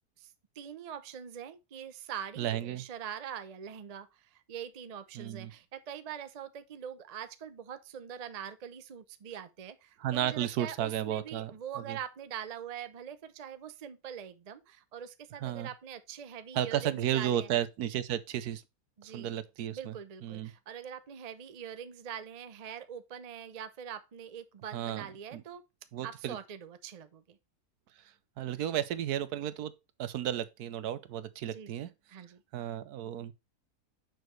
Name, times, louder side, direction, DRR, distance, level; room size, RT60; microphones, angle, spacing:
voice 1, 0.2-17.5 19.0-19.3 19.7-25.6 26.0-27.4 31.5-31.7 32.1-32.4, right 8 dB, 45° right, 0.5 m, -43 dB
voice 2, 2.4-2.8 5.1-5.5 10.0-11.5 11.9-12.0 15.4-15.7 16.5-18.6 19.0-19.9 20.2-20.5 24.7-25.1 25.3-25.4 25.9-26.4 28.4-29.7 30.0-31.9 32.5-33.3, right 11 dB, 80° right, 1.2 m, -33 dB
6.4 x 6.3 x 3.2 m
omnidirectional pair, 1.6 m